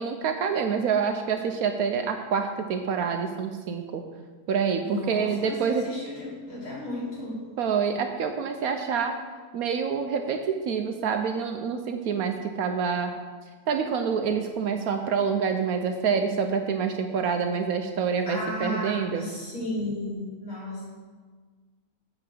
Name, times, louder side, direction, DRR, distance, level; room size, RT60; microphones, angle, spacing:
voice 1, 0.0-4.0 4.5-5.8 7.6-9.1 9.5-13.1 13.7-19.2, right 6 dB, 70° right, 6 dB, 1.0 m, -27 dB
voice 2, 4.8-7.4 18.3-20.9, left 1 dB, 55° left, -8 dB, 3.5 m, -34 dB
7.8 x 4.7 x 6.5 m, 1.4 s
omnidirectional pair, 1.8 m